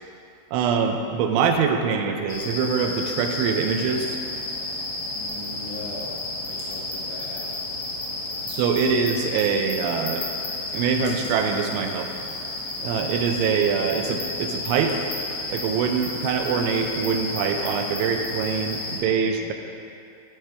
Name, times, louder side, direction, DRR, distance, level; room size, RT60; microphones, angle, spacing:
voice 1, 0.5-4.2 8.5-10.3 10.7-12.1 12.8-15.0 15.5-19.5, right 6 dB, 85° right, 4 dB, 2.9 m, -24 dB
sound 1, 2.3-19.0, left 2 dB, 65° left, 2.4 m, -32 dB
voice 2, 5.2-6.2 6.5-7.5, left 2 dB, 80° left, -2 dB, 2.6 m, -39 dB
13.0 x 4.7 x 3.3 m, 2.6 s
omnidirectional pair, 5.4 m